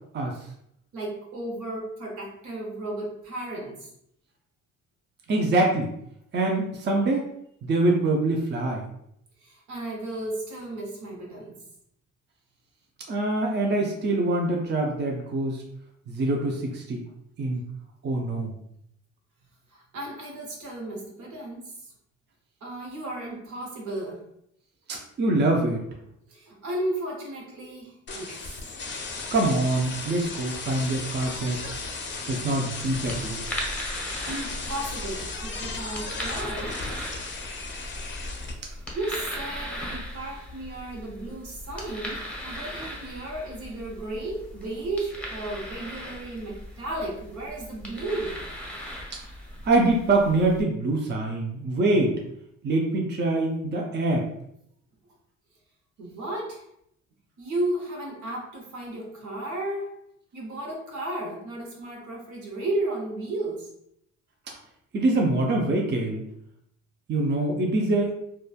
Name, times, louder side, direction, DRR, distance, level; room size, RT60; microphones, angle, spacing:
voice 1, 0.9-3.9 9.4-11.6 19.7-21.9 22.6-24.2 26.3-28.5 34.2-36.8 38.6-48.4 56.0-56.7 57.4-60.0 60.3-63.7, right 1 dB, 75° right, -1 dB, 1.0 m, -34 dB
voice 2, 5.3-5.9 6.3-7.2 7.6-8.8 13.1-15.6 16.1-17.0 17.4-17.6 18.0-18.5 24.9-25.8 29.3-31.6 32.3-33.4 49.6-52.2 52.6-54.2 64.9-66.2 67.1-68.1, right 2 dB, 35° right, 0 dB, 0.5 m, -24 dB
sound 1, 28.1-38.5, left 4 dB, 40° left, 0.5 m, -36 dB
sound 2, 32.8-50.6, equal, 5° left, 0.7 m, -38 dB
3.0 x 2.2 x 2.4 m, 0.75 s
cardioid pair, 90°, 30 cm